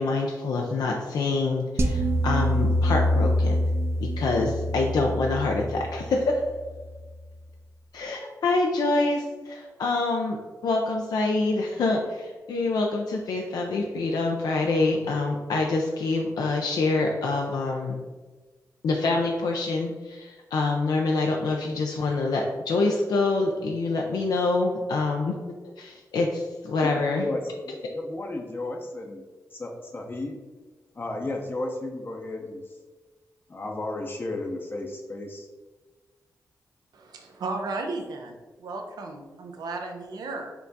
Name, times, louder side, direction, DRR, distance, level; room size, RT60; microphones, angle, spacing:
voice 1, 0.0-3.6 4.0-6.4 7.9-18.0 18.8-25.4 25.8-27.3, left 3 dB, 80° left, 0 dB, 0.4 m, -26 dB
sound 1, 1.8-7.0, equal, 40° right, 0.5 m, -25 dB
voice 2, 26.8-27.4 27.7-29.2 29.5-30.4 30.9-32.6 33.5-35.5, left 2 dB, 35° left, 1 dB, 0.6 m, -33 dB
voice 3, 36.9-40.5, right 3 dB, 85° right, 3 dB, 0.6 m, -34 dB
4.4 x 2.4 x 3.9 m, 1.3 s
cardioid pair, 60°, 7 cm